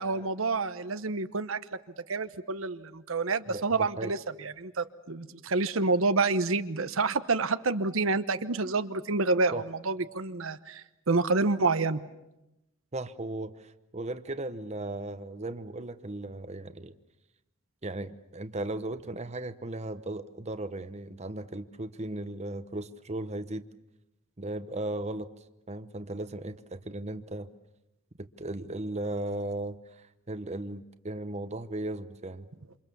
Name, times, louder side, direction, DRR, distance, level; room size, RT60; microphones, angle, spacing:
voice 1, 0.0-1.6 2.1-12.0, right 3 dB, 80° right, 11 dB, 1.0 m, -28 dB
voice 2, 3.5-4.1 9.5-9.6 12.9-17.0 17.8-23.6 24.4-25.3 25.7-27.5 28.2-32.5, right 2 dB, 35° right, 11 dB, 1.0 m, -36 dB
28.0 x 27.0 x 7.0 m, 0.90 s
head